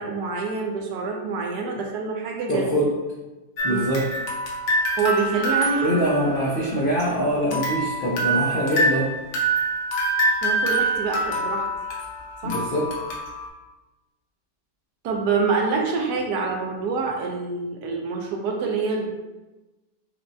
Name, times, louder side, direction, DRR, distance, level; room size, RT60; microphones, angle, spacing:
voice 1, 0.0-2.6 3.7-3.8 5.0-6.0 10.4-11.7 12.4-12.6 15.0-19.1, right 4 dB, 75° right, 1 dB, 1.2 m, -26 dB
voice 2, 2.5-2.9 3.6-4.1 5.8-9.1 12.4-12.9, equal, 70° left, -5 dB, 0.5 m, -23 dB
sound 1, 3.6-7.1 7.5-13.5, right 1 dB, 85° left, 1.4 m, -25 dB
6.0 x 2.1 x 2.6 m, 1.1 s
omnidirectional pair, 1.8 m